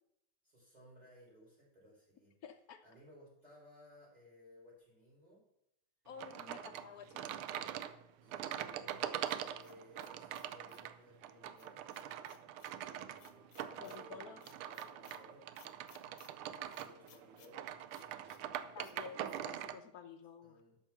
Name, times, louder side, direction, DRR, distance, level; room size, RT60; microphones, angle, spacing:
voice 1, 0.4-2.3 2.8-5.4 6.4-7.3 8.2-11.9 12.9-15.4 16.4-17.7 18.1-18.7 20.4-20.8, equal, 15° right, -7 dB, 5.3 m, -61 dB
voice 2, 2.4-2.8 6.1-7.7 13.8-14.4 18.7-20.6, left 7 dB, 85° left, 7 dB, 0.8 m, -52 dB
sound 1, 6.2-19.8, right 11 dB, 85° right, 1.5 m, -43 dB
sound 2, 8.9-10.9 11.6-12.8 13.2-14.0 14.4-15.2 15.5-16.3 16.7-17.5 17.9-18.4 18.8-19.0 19.2-19.4, left 8 dB, 70° left, 1.7 m, -63 dB
12.5 x 6.2 x 6.0 m, 0.78 s
omnidirectional pair, 2.4 m